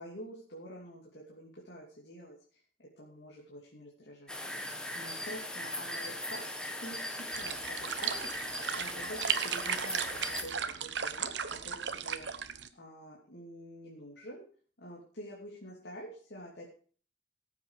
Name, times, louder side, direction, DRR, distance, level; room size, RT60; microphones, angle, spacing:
voice 1, 0.0-4.3 4.9-6.4 6.8-12.3 12.8-14.4 14.8-16.7, equal, 65° left, -3 dB, 2.9 m, -47 dB
sound 1, 4.3-10.4, left 1 dB, 5° left, 1.5 m, -39 dB
sound 2, 7.3-12.7, right 8 dB, 70° right, 1.0 m, -36 dB
18.0 x 8.3 x 4.8 m, 0.43 s
head